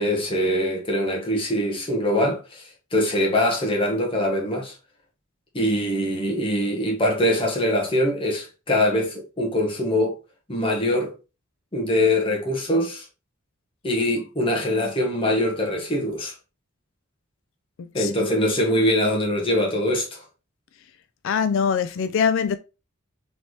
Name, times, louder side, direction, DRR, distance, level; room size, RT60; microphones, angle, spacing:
voice 1, 0.0-4.7 5.5-10.2 10.5-11.1 11.7-13.0 13.8-16.3 17.9-20.2, left 1 dB, 25° left, 1.1 m, -23 dB
voice 2, 17.8-18.1 21.2-22.6, left 6 dB, 65° left, 0.3 m, -23 dB
4.0 x 3.3 x 3.0 m
head